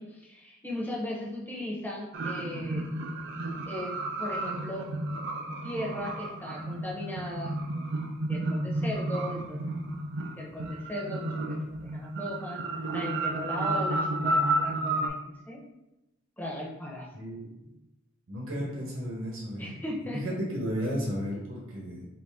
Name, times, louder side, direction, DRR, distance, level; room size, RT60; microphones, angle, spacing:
voice 1, 0.0-2.9 3.7-3.9 4.2-4.9 5.6-8.0 8.3-9.7 10.4-12.6 12.9-15.1 15.4-15.6 16.4-17.1 18.5-18.8 19.6-20.2, left 1 dB, 10° left, -3 dB, 0.8 m, -37 dB
sound 1, 2.1-15.1, right 2 dB, 60° right, 0.5 m, -32 dB
voice 2, 17.1-17.5 18.3-19.8 20.1-22.1, equal, 90° right, -2 dB, 1.0 m, -33 dB
3.2 x 2.7 x 3.5 m, 0.93 s
head